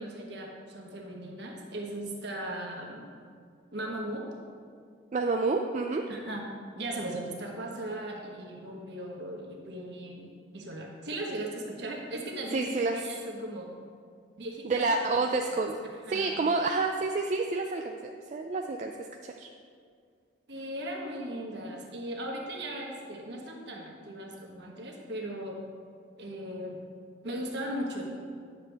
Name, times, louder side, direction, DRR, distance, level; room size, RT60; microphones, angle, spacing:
voice 1, 0.0-3.1 3.7-4.3 6.1-6.5 6.8-13.7 14.4-15.3 15.5-15.7 16.1-16.4 20.5-25.6 26.2-26.8 27.2-28.1, right 1 dB, 60° right, 0 dB, 1.2 m, -38 dB
voice 2, 5.1-6.1 12.5-13.0 14.6-15.7 16.1-18.9 19.2-19.5, right 3 dB, 35° right, 3 dB, 0.3 m, -29 dB
9.8 x 6.7 x 3.4 m, 2.2 s
head